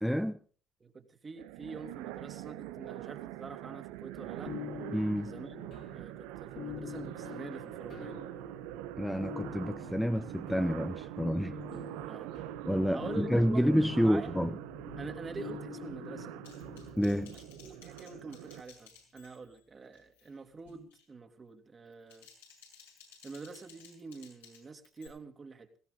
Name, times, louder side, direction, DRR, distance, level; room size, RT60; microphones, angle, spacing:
voice 1, 0.0-0.4 4.9-5.3 9.0-11.5 12.7-14.5 17.0-17.4, equal, ahead, 0.8 m, -29 dB
voice 2, 0.8-4.6 5.2-8.2 12.1-12.3 12.9-13.6 13.9-14.3 15.0-16.3 17.3-22.3 23.2-25.7, right 4 dB, 35° right, 2.6 m, -46 dB
sound 1, 1.4-18.6, right 15 dB, 75° right, 0.7 m, -44 dB
sound 2, 4.1-17.9 20.7-20.9, left 8 dB, 55° left, 2.9 m, -46 dB
Typing, 16.4-19.6 19.9-20.3 20.7-21.1 21.9-25.1, left 6 dB, 90° left, 6.6 m, -57 dB
19.5 x 16.5 x 3.9 m
hypercardioid pair, 60°, 0 cm